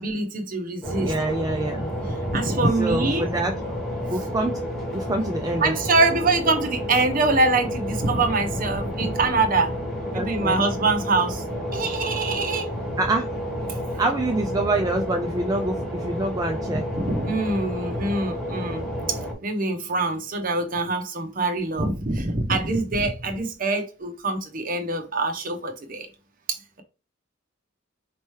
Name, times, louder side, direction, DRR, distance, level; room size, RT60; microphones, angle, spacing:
voice 1, 0.0-1.1 2.3-3.3 5.6-9.7 10.1-11.4 11.7-12.7 16.9-18.8 19.4-26.1 26.5-26.8, right 3 dB, 45° right, 0.8 m, -24 dB
sound 1, 0.8-19.3, equal, 5° left, 1.3 m, -30 dB
voice 2, 1.0-1.9 2.8-3.6 4.1-4.6 4.9-5.7 10.1-10.7 13.0-13.3 14.0-16.9, right 2 dB, 20° right, 0.3 m, -26 dB
4.5 x 2.9 x 3.1 m
head